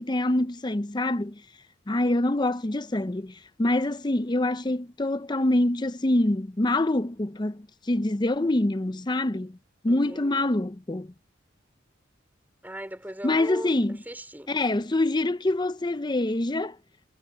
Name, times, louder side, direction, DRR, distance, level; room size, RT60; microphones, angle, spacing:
voice 1, 0.0-1.4 1.9-9.6 9.8-11.1 13.2-14.0 14.5-16.8, left 1 dB, 20° left, 0.6 m, -25 dB
voice 2, 9.9-10.5 12.6-14.5, right 1 dB, 10° right, 3.8 m, -39 dB
head